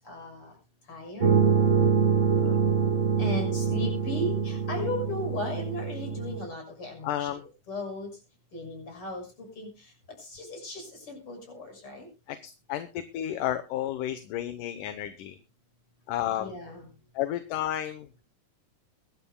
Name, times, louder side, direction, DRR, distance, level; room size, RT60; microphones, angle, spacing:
voice 1, 0.0-0.5 0.9-1.3 3.2-7.3 7.7-8.1 8.5-9.3 9.6-9.7 10.2-12.1 16.4-16.9, left 1 dB, 40° left, 3 dB, 7.3 m, -36 dB
sound 1, 1.2-6.4, right 6 dB, 50° right, 0.8 m, -25 dB
voice 2, 7.0-7.5 12.3-15.4 16.1-16.6 17.1-18.2, left 12 dB, 75° left, 10 dB, 2.4 m, -32 dB
22.5 x 12.5 x 2.2 m, 0.31 s
omnidirectional pair, 3.8 m